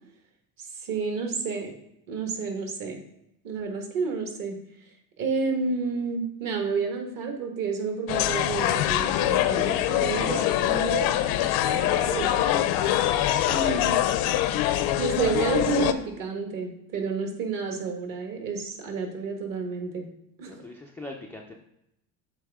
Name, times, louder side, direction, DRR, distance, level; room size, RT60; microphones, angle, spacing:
voice 1, 0.8-1.7 2.1-3.0 3.4-4.6 5.2-11.1 11.7-12.3 13.4-13.9 15.0-20.1 20.4-20.7, right 5 dB, 45° right, 3 dB, 1.6 m, -30 dB
sound 1, 8.1-15.9, left 12 dB, 55° left, 0.6 m, -24 dB
voice 2, 9.6-10.6 20.5-21.5, left 2 dB, 5° left, 1 dB, 0.3 m, -41 dB
8.1 x 3.4 x 3.5 m, 0.81 s
supercardioid pair, 105°, 45 cm